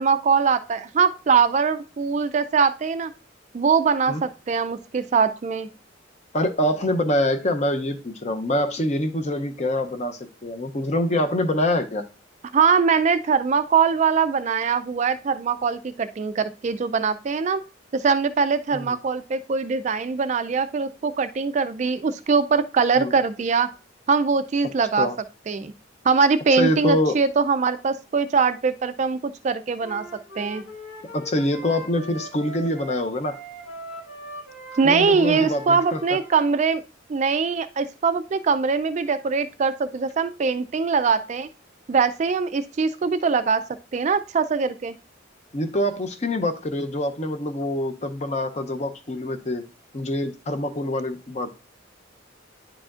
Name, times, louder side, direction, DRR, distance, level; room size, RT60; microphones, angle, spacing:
voice 1, 0.0-3.1 3.5-5.7 12.5-17.6 17.9-23.7 24.1-25.1 25.5-25.7 26.0-30.0 30.4-30.6 34.8-36.8 37.1-41.5 41.9-43.6 43.9-45.0, right 5 dB, 35° right, 12 dB, 0.3 m, -22 dB
voice 2, 6.3-12.0 18.7-19.0 23.0-23.1 25.0-25.2 26.5-27.2 31.1-33.4 34.8-36.0 45.5-49.6 49.9-51.5, left 1 dB, 35° left, 7 dB, 0.6 m, -25 dB
Wind instrument woodwind instrument, 29.8-36.6, equal, 70° left, 2.1 m, -40 dB
10.0 x 4.9 x 2.4 m, 0.33 s
head